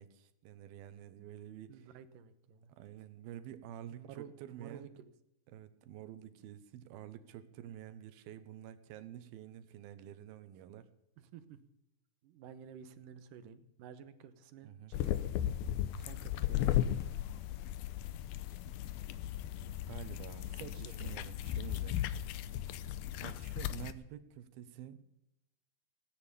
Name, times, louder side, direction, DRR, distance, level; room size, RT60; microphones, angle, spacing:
voice 1, 0.0-1.9 2.8-4.9 5.5-10.9 14.6-14.9 19.9-22.0 23.2-25.1, right 11 dB, 90° right, 12 dB, 2.9 m, -49 dB
voice 2, 1.7-2.7 3.9-5.1 11.2-11.6 12.2-15.4 16.0-17.1 20.5-21.2, right 8 dB, 70° right, 12 dB, 2.5 m, -52 dB
sound 1, 14.9-23.9, left 12 dB, 85° left, 2.6 m, -36 dB
17.0 x 10.0 x 6.8 m, 0.84 s
omnidirectional pair, 4.2 m